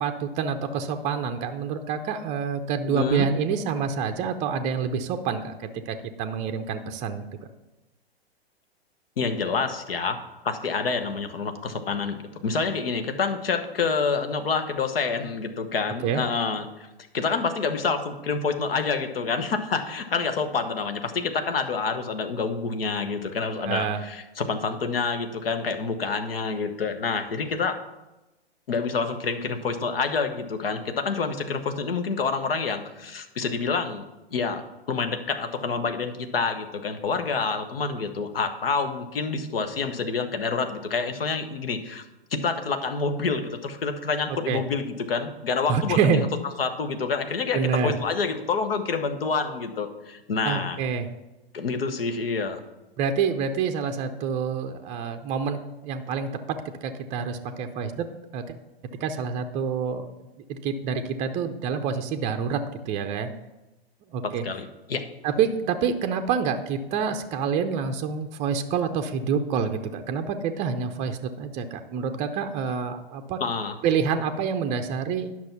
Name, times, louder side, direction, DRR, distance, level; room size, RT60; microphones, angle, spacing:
voice 1, 0.0-7.3 16.0-16.2 23.6-24.0 44.5-44.6 45.7-46.2 47.5-47.9 50.5-51.1 53.0-58.0 58.3-58.6 59.0-60.1 60.5-62.6 62.9-63.3 64.1-64.4 65.2-73.4 73.8-75.3, right 6 dB, 20° right, 7 dB, 0.6 m, -27 dB
voice 2, 2.8-3.3 9.2-10.2 10.4-16.9 17.1-27.8 28.7-42.0 42.3-46.3 46.6-50.8 51.5-52.6 64.2-65.0 73.4-73.8, left 5 dB, 65° left, 7 dB, 1.2 m, -28 dB
10.5 x 6.1 x 5.8 m, 1.0 s
figure-of-eight pair, 110°, 31 cm